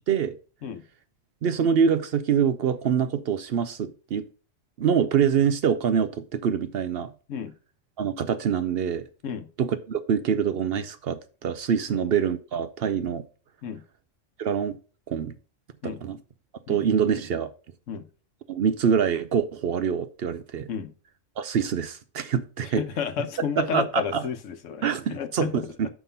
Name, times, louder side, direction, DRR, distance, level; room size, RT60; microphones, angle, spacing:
voice 1, 0.1-0.4 1.4-4.2 4.8-7.1 8.0-9.0 9.6-13.3 14.4-14.8 15.1-15.3 15.8-16.2 16.7-17.5 18.5-20.7 21.4-22.8 23.6-24.2 24.8-25.9, right 7 dB, 60° right, 0.7 m, -25 dB
voice 2, 22.6-25.7, left 7 dB, 85° left, 1.1 m, -32 dB
5.9 x 5.6 x 5.4 m
omnidirectional pair, 1.3 m